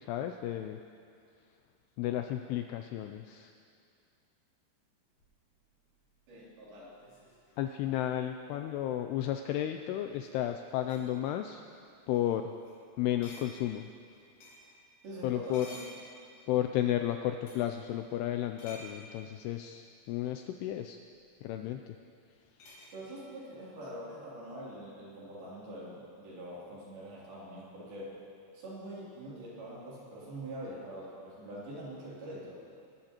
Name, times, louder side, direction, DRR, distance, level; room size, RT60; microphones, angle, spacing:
voice 1, 0.1-0.8 2.0-3.5 7.6-11.6 12.1-12.5 13.0-13.9 15.2-15.7 16.5-21.0 21.4-22.0, left 12 dB, 85° left, 6 dB, 2.4 m, -33 dB
sound 1, 5.2-9.0 10.0-10.3 10.7-11.1 11.7-11.8 12.1-12.3 12.6-12.8 13.2-14.8 15.4-16.6 17.4-17.8 18.6-19.0 20.7-20.8 22.6-22.9, left 1 dB, 55° left, 5.1 m, -53 dB
voice 2, 6.3-7.0 15.0-15.8 22.9-28.2 28.5-32.6, right 1 dB, 60° right, -7 dB, 4.8 m, -44 dB
24.0 x 14.0 x 3.0 m, 2.4 s
omnidirectional pair, 5.1 m